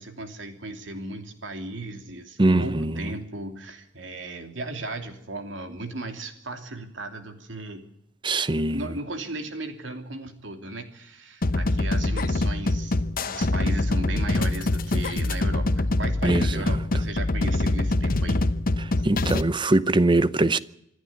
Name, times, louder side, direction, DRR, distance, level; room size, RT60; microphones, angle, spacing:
voice 1, 0.0-7.8 8.6-18.4 19.0-19.1, right 2 dB, 70° right, 2.9 m, -36 dB
voice 2, 2.4-3.0 8.2-8.9 16.2-16.8 18.8-20.6, right 2 dB, 25° right, 0.7 m, -22 dB
sound 1, 11.4-19.4, left 2 dB, 50° left, 0.9 m, -24 dB
26.0 x 11.0 x 9.4 m
head